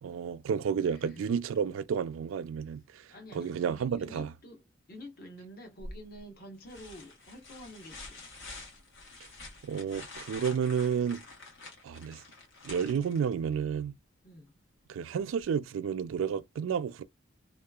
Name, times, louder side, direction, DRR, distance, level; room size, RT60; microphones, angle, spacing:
voice 1, 0.0-4.3 9.6-11.2 11.8-12.2 12.6-13.9 14.9-17.0, right 7 dB, 90° right, 0.3 m, -31 dB
voice 2, 0.9-1.4 3.1-8.3 14.2-14.6, equal, 50° left, 0.9 m, -49 dB
sound 1, 5.8-6.2 6.7-13.6 15.4-15.5, left 2 dB, 75° left, 1.2 m, -47 dB
2.7 x 2.3 x 2.3 m
head